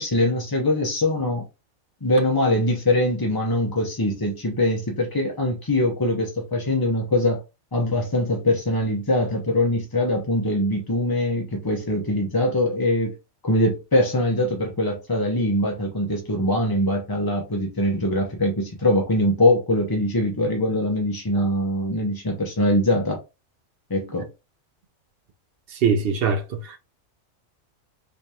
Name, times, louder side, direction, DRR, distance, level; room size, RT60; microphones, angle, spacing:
voice 1, 0.0-1.5 2.0-7.4 7.7-13.1 13.4-23.2 23.9-24.3, left 1 dB, 25° left, 0.5 m, -22 dB
voice 2, 25.7-26.8, right 5 dB, 60° right, 0.7 m, -22 dB
3.4 x 3.1 x 2.7 m
omnidirectional pair, 1.4 m